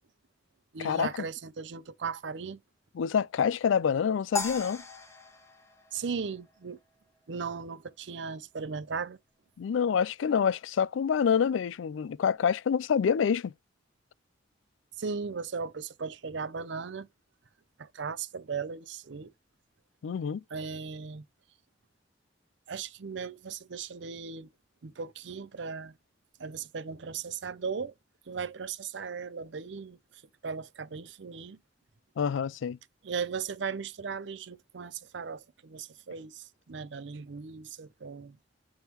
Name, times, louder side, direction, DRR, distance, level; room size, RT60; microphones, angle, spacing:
voice 1, 0.7-2.6 5.9-6.8 7.3-9.2 15.0-17.1 17.8-19.3 20.5-21.2 22.7-24.5 24.8-25.9 26.4-27.9 28.3-31.6 33.0-38.6, right 5 dB, 70° right, 0.6 m, -37 dB
voice 2, 2.9-4.8 9.6-13.5 20.0-20.4 32.2-32.8, left 7 dB, 90° left, 0.4 m, -27 dB
sound 1, 4.4-6.7, left 3 dB, 15° left, 1.1 m, -37 dB
8.8 x 3.6 x 2.9 m
head